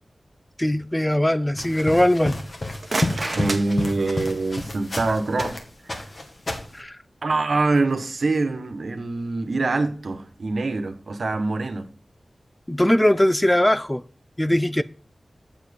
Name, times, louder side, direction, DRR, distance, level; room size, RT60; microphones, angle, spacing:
voice 1, 0.6-2.4 6.7-6.9 12.7-14.0 14.4-14.8, left 1 dB, 10° left, 0.5 m, -20 dB
sound 1, 1.6-5.6 5.9-6.8, left 2 dB, 50° left, 2.1 m, -30 dB
sound 2, 2.5-4.6, right 3 dB, 50° right, 1.2 m, -32 dB
Clapping, 3.2-7.9, right 1 dB, 5° right, 2.0 m, -41 dB
voice 2, 3.3-5.6 5.9-6.0 7.2-11.9, right 3 dB, 70° right, 1.4 m, -24 dB
7.5 x 7.5 x 5.3 m
wide cardioid pair, 75°, 0 cm